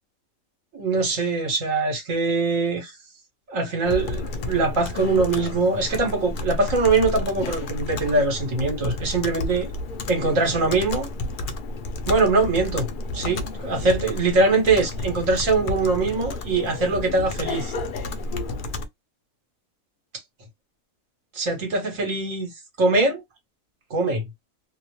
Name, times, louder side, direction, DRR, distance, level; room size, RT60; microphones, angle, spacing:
voice 1, 0.7-3.0 3.5-9.7 10.1-11.1 12.1-12.9 13.1-17.7 21.3-22.5 22.8-23.2 23.9-24.2, right 3 dB, 70° right, 1.4 m, -22 dB
Computer keyboard, 3.8-18.9, left 2 dB, 80° left, 0.4 m, -31 dB
2.9 x 2.0 x 2.9 m
omnidirectional pair, 1.5 m